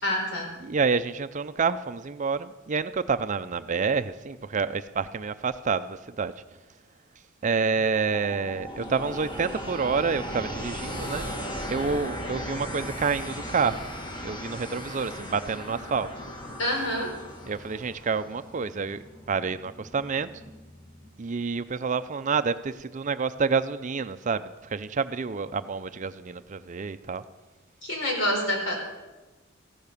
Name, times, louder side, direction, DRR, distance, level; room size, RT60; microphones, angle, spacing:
voice 1, 0.0-0.5 16.6-17.1 27.8-28.8, left 1 dB, 70° left, 1 dB, 4.4 m, -27 dB
voice 2, 0.6-6.3 7.4-11.3 11.7-13.8 14.2-16.1 17.4-20.3 21.2-27.2, right 5 dB, 40° right, 12 dB, 0.5 m, -28 dB
sound 1, 7.9-21.1, equal, 25° left, 1.6 m, -38 dB
15.0 x 10.5 x 6.8 m, 1.2 s
head